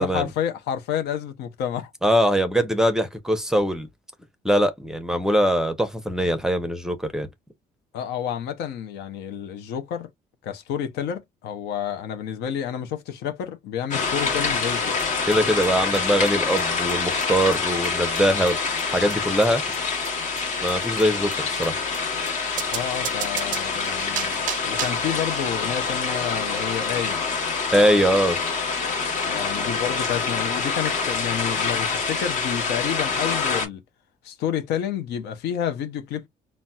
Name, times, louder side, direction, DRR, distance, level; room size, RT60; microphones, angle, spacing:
voice 1, 0.0-1.9 7.9-10.1 10.4-14.9 22.7-27.2 29.2-33.8 34.2-36.3, left 9 dB, 80° left, 0.6 m, -30 dB
voice 2, 2.0-3.9 4.4-7.3 15.3-18.6 18.8-19.6 20.6-21.8 27.7-28.4, equal, 5° right, 0.6 m, -22 dB
sound 1, 13.9-33.7, left 4 dB, 50° left, 1.1 m, -26 dB
sound 2, 15.0-15.1 15.3-15.4 15.6-15.7 15.9-16.0 16.3-16.4 16.6-16.7 16.9-17.0 17.2-17.3 17.5-17.6 17.8-17.9 18.2-18.3 18.5-18.6 18.8-18.9 19.1-19.2 19.4-19.5 19.7-19.8 20.0-20.1 20.4-20.5 20.7-20.8 21.0-21.1 21.3-21.4 21.6-21.7 21.9-22.0 22.3-22.4 22.6-25.1, right 10 dB, 50° right, 0.4 m, -33 dB
4.0 x 2.1 x 2.3 m
cardioid pair, 110°, 17 cm